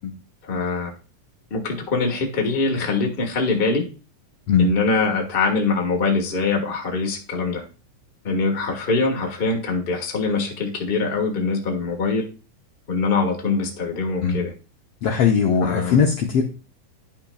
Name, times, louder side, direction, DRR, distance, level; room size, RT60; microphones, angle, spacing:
voice 1, 0.5-0.9 1.5-3.8 4.6-7.6 8.2-12.3 12.9-14.5 15.6-16.0, left 4 dB, 40° left, 1 dB, 0.7 m, -23 dB
voice 2, 15.0-16.4, left 6 dB, 90° left, 2 dB, 1.3 m, -19 dB
11.5 x 5.8 x 2.3 m, 0.35 s
omnidirectional pair, 3.9 m